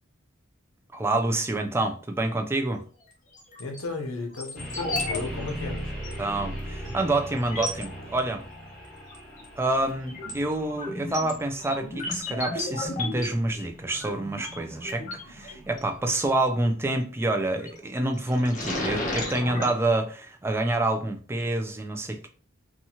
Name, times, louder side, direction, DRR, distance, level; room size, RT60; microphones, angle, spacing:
voice 1, 0.9-2.8 6.2-8.4 9.6-22.3, right 2 dB, 10° right, 0.3 m, -27 dB
sound 1, 3.3-3.8 4.3-5.2 5.4-5.5 6.0-6.1 6.8-6.9 7.4-7.8 9.1-9.5 9.9-15.8 17.4-17.8 18.2-19.7, left 2 dB, 40° left, 0.8 m, -34 dB
voice 2, 3.6-5.9, left 3 dB, 85° left, 0.7 m, -34 dB
sound 2, 4.6-16.5, equal, 5° left, 1.3 m, -40 dB
2.7 x 2.3 x 2.8 m
head